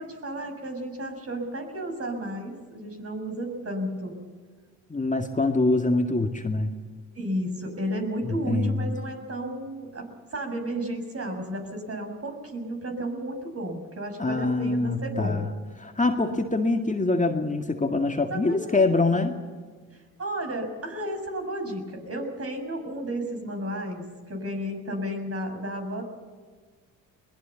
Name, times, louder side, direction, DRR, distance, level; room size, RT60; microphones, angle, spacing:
voice 1, 0.0-4.2 7.1-15.5 18.3-18.9 19.9-26.0, right 1 dB, 40° right, 4 dB, 6.5 m, -33 dB
voice 2, 4.9-6.7 8.2-8.9 14.2-15.5 15.8-19.4, left 3 dB, 20° left, 4 dB, 2.1 m, -24 dB
22.0 x 20.0 x 7.2 m, 1.5 s
hypercardioid pair, 55°, 36 cm